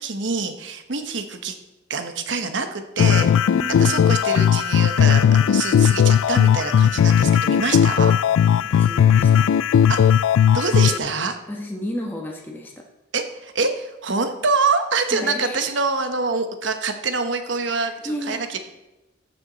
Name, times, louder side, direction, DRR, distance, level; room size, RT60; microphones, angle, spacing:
voice 1, 0.0-1.5 1.9-3.3 3.7-8.1 8.7-8.8 9.9-10.0 10.5-11.3 13.1-18.6, right 4 dB, 65° right, 7 dB, 1.0 m, -25 dB
sound 1, 3.0-11.0, left 8 dB, 80° left, 0.3 m, -17 dB
voice 2, 3.5-4.1 8.7-9.5 10.7-10.9 11.5-12.7 15.1-15.6 17.8-18.5, equal, 10° left, -1 dB, 1.2 m, -32 dB
14.0 x 7.0 x 4.0 m, 0.99 s
head